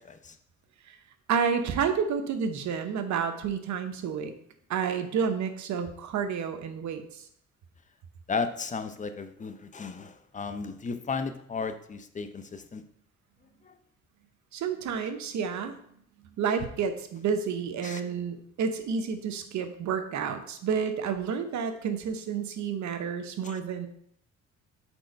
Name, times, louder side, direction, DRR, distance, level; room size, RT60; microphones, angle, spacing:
voice 1, 1.3-4.3 4.7-7.2 14.5-15.7 16.4-23.9, right 6 dB, 70° right, 7 dB, 0.9 m, -30 dB
voice 2, 8.3-12.8 17.8-18.0 23.4-23.6, left 4 dB, 25° left, 9 dB, 0.6 m, -34 dB
4.6 x 4.3 x 5.2 m, 0.67 s
cardioid pair, 90°, 30 cm